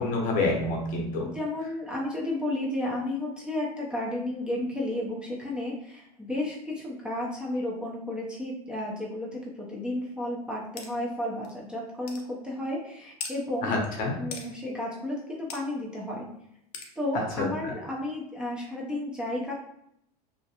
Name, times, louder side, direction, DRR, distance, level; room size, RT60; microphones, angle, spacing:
voice 1, 0.0-1.3 13.6-14.1 17.4-17.7, left 2 dB, 45° left, 0 dB, 0.7 m, -27 dB
voice 2, 1.2-13.7 14.2-16.3 17.0-19.5, left 1 dB, 5° right, -5 dB, 0.5 m, -32 dB
sound 1, 10.8-10.9 11.4-11.5 12.1-12.2 13.2-13.4 14.3-14.5 15.5-15.6 16.7-16.9, left 5 dB, 80° left, 0.6 m, -38 dB
2.4 x 2.1 x 2.8 m, 0.74 s
supercardioid pair, 110°, 19 cm